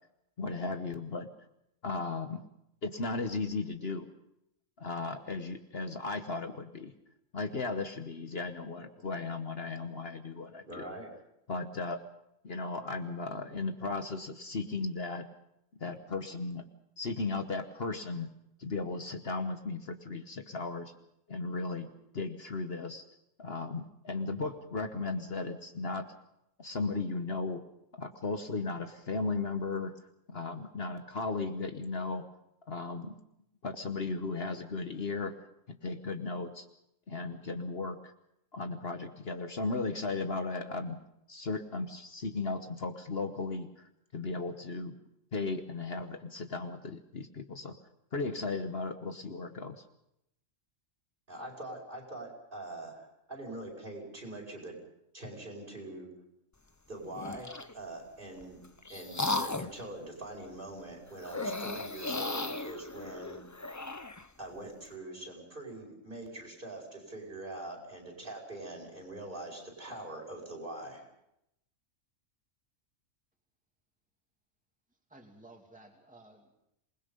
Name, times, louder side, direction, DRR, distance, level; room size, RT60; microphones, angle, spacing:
voice 1, 0.4-1.3 1.8-2.4 2.8-4.1 4.8-6.9 7.3-10.9 11.5-12.0 12.4-15.3 15.8-16.6 17.0-18.3 18.6-20.9 21.3-23.0 23.4-26.1 26.6-27.6 28.0-29.9 30.3-32.2 32.7-33.1 33.6-35.4 35.8-36.7 37.1-38.1 38.5-41.0 41.3-44.9 45.3-47.7 48.1-49.8, left 3 dB, 50° left, 7 dB, 1.4 m, -36 dB
voice 2, 10.7-11.1 51.3-54.8 55.1-56.1 56.9-58.6 58.9-63.4 64.4-71.0, right 1 dB, 40° right, 0 dB, 5.4 m, -43 dB
sound 1, 57.1-57.7 58.4-59.8 61.2-64.3, left 3 dB, 20° left, 0.6 m, -36 dB
voice 3, 75.1-76.5, right 2 dB, 5° right, 2 dB, 2.7 m, -55 dB
27.0 x 20.5 x 5.4 m, 0.81 s
omnidirectional pair, 1.3 m